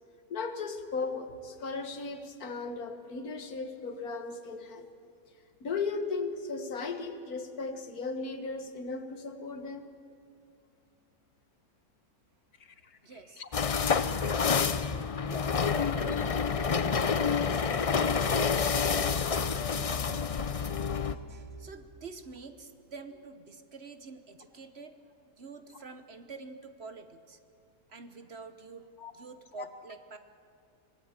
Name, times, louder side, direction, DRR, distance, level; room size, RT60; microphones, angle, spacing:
voice 1, 0.3-4.9 5.6-9.8 12.6-13.0 13.4-13.5 29.0-29.1 29.6-29.7, left 4 dB, 75° left, 8 dB, 2.0 m, -36 dB
voice 2, 13.0-13.4 13.9-15.0 15.2-17.6 18.0-19.4 19.7-27.4 27.9-30.2, right 4 dB, 45° right, 9 dB, 1.2 m, -47 dB
sound 1, 13.5-21.2, left 6 dB, 55° left, 0.3 m, -28 dB
25.5 x 19.0 x 8.9 m, 2.4 s
omnidirectional pair, 1.6 m